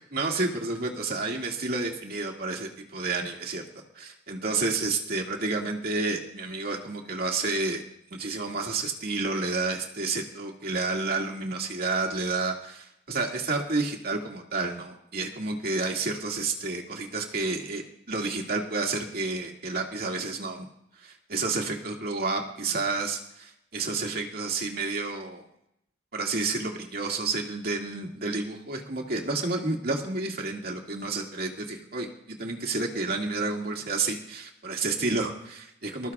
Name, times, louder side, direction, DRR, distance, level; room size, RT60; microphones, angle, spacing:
voice 1, 0.1-3.6 3.9-7.8 8.1-20.7 21.0-25.4 26.1-36.1, right 3 dB, 50° right, 0 dB, 2.1 m, -30 dB
25.5 x 13.5 x 2.4 m, 0.76 s
head